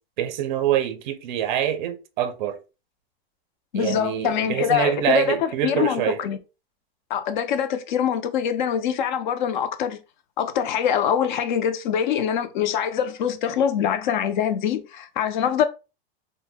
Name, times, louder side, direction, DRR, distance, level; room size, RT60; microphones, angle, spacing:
voice 1, 0.2-2.6 3.7-6.2, right 10 dB, 50° right, 0.4 m, -25 dB
voice 2, 3.7-6.4 7.1-10.0 10.4-15.7, left 8 dB, 50° left, 0.4 m, -24 dB
2.5 x 2.1 x 3.3 m
supercardioid pair, 180°, 31 cm